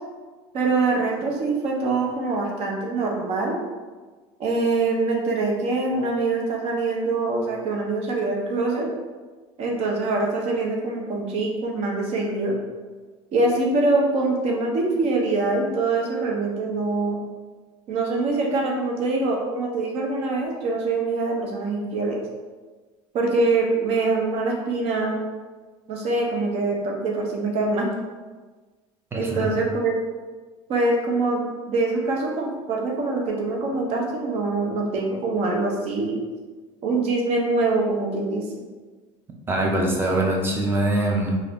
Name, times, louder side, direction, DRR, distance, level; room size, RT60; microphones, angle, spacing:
voice 1, 0.5-3.6 4.4-8.9 9.6-12.5 13.3-17.2 17.9-22.2 23.1-25.2 25.9-27.9 29.1-29.9 30.7-36.2 36.8-38.5, right 3 dB, 50° right, 0 dB, 0.7 m, -24 dB
voice 2, 29.1-29.5 39.5-41.4, right 1 dB, 15° right, 0 dB, 0.5 m, -23 dB
2.7 x 2.4 x 3.4 m, 1.3 s
cardioid pair, 130°, 13 cm